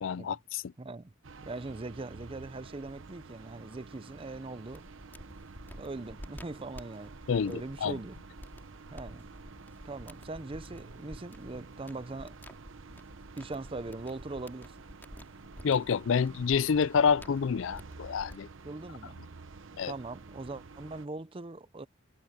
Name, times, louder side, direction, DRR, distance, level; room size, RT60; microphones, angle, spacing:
voice 1, 0.0-0.6 7.3-7.5 7.8-8.0 15.6-18.5 19.8-19.9, left 6 dB, 75° left, 0.4 m, -27 dB
voice 2, 0.8-1.1 1.4-4.9 5.8-7.1 7.4-8.2 8.9-9.3 9.8-12.4 13.3-14.8 18.6-19.2 19.9-21.9, right 2 dB, 30° right, 0.6 m, -41 dB
sound 1, 1.2-21.1, right 4 dB, 80° right, 0.8 m, -50 dB
sound 2, 4.7-18.3, equal, 10° left, 2.9 m, -51 dB
head